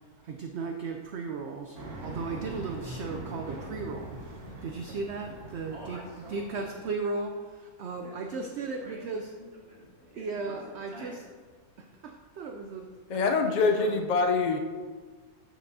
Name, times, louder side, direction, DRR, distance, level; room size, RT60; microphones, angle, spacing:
voice 1, 0.2-6.0 6.3-9.3 10.2-11.2 11.8-13.4 13.8-14.0, right 4 dB, 65° right, 4 dB, 0.7 m, -36 dB
sound 1, 1.7-6.8, right 1 dB, 90° right, 1.6 m, -42 dB
voice 2, 2.9-3.3 5.7-6.7 8.0-11.2, right 1 dB, 45° right, -3 dB, 1.7 m, -48 dB
voice 3, 13.1-14.6, left 4 dB, 75° left, 4 dB, 0.4 m, -24 dB
8.7 x 6.5 x 2.6 m, 1.5 s
omnidirectional pair, 1.5 m